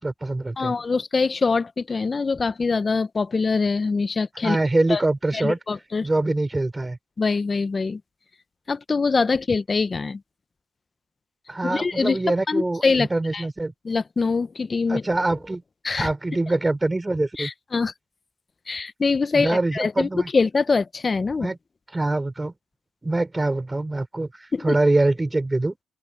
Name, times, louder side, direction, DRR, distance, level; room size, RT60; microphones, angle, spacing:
voice 1, 0.0-0.7 4.4-5.6 6.0-7.0 11.5-13.7 14.9-15.6 16.0-17.5 19.3-20.3 21.4-21.6 21.9-22.5 23.0-25.8, right 2 dB, 15° right, 5.7 m, -24 dB
voice 2, 0.6-4.6 4.9-5.0 5.3-6.1 7.2-8.0 8.7-10.2 11.6-12.2 12.5-13.1 13.3-13.4 13.8-15.0 15.8-16.1 17.4-17.9 18.7-21.5 24.5-24.6, left 4 dB, 30° left, 0.8 m, -23 dB
open air
cardioid pair, 90°, 0 cm